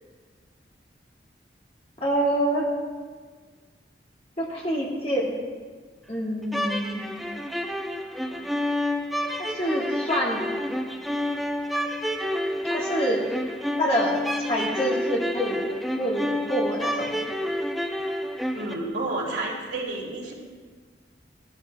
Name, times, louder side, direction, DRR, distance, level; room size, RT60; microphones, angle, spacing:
voice 1, 2.0-2.7 4.4-5.4 6.1-7.0 9.5-10.4 12.7-13.2 13.8-15.6 15.9-17.2, equal, 30° left, -3 dB, 2.3 m, -26 dB
sound 1, 6.4-18.7, equal, ahead, 0.6 m, -29 dB
voice 2, 18.5-20.3, right 2 dB, 75° right, -2 dB, 3.2 m, -30 dB
18.0 x 12.5 x 3.5 m, 1.5 s
head